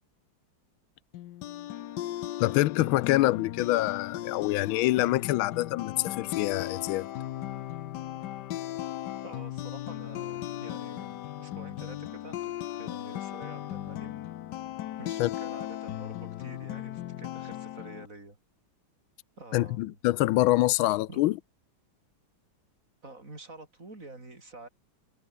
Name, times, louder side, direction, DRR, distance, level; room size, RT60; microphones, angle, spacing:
sound 1, 1.1-18.1, left 13 dB, 65° left, 1.2 m, -37 dB
voice 1, 2.4-7.1 15.2-15.3 19.5-21.4, left 17 dB, 90° left, 1.4 m, -25 dB
voice 2, 9.2-14.1 15.0-18.4 19.4-20.0 21.1-21.2 23.0-24.7, right 2 dB, 40° right, 5.0 m, -48 dB
omnidirectional pair, 2.2 m